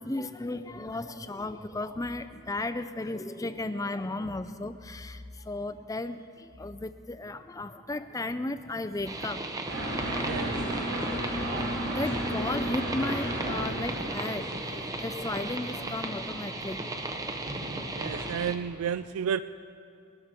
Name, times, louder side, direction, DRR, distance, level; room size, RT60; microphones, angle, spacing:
voice 1, 0.0-9.5 10.3-16.8 17.3-18.2, left 2 dB, 15° left, 11 dB, 0.4 m, -35 dB
sound 1, 9.0-18.5, right 2 dB, 15° right, 0.8 m, -36 dB
sound 2, 9.4-12.0 12.3-12.5, right 1 dB, 30° left, 1.1 m, -46 dB
sound 3, 9.7-18.3, right 1 dB, 65° right, 4.0 m, -35 dB
voice 2, 18.0-19.4, right 8 dB, 85° right, 13 dB, 0.4 m, -31 dB
21.5 x 13.0 x 4.4 m, 2.4 s
head